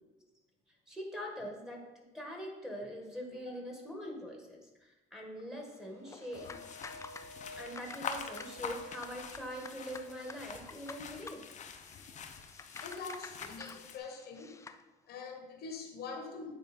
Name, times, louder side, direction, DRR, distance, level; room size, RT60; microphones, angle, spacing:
voice 1, 0.9-6.6 7.6-11.4, equal, 5° right, -1 dB, 1.7 m, -43 dB
sound 1, 5.5-10.2, left 1 dB, 70° right, 1.7 m, -53 dB
sound 2, 6.1-14.8, left 4 dB, 15° left, 0.4 m, -51 dB
sound 3, 6.3-14.0, left 6 dB, 45° left, 0.8 m, -46 dB
voice 2, 12.8-14.5 15.1-16.5, left 4 dB, 70° left, 4 dB, 1.3 m, -44 dB
9.0 x 4.5 x 4.4 m, 1.1 s
cardioid pair, 110°, 17 cm